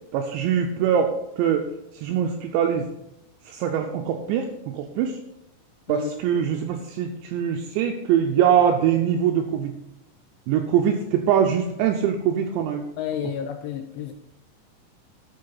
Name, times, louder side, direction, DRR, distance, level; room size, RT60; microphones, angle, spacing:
voice 1, 0.1-1.7 1.9-2.9 3.5-5.2 5.9-9.7 10.5-12.8, right 8 dB, 90° right, 4 dB, 2.5 m, -23 dB
voice 2, 13.0-14.1, left 9 dB, 85° left, 6 dB, 2.7 m, -30 dB
12.0 x 6.8 x 4.0 m, 0.87 s
omnidirectional pair, 5.9 m